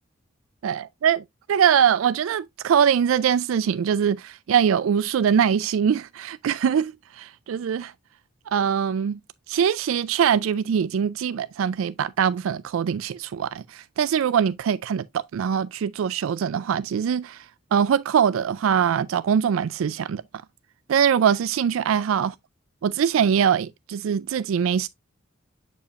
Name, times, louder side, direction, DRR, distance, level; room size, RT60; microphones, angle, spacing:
voice 1, 0.6-7.9 8.5-9.2 9.5-17.4 17.7-20.2 20.9-22.3 22.8-24.9, right 8 dB, 85° right, 0.3 m, -22 dB
8.4 x 5.1 x 2.4 m
head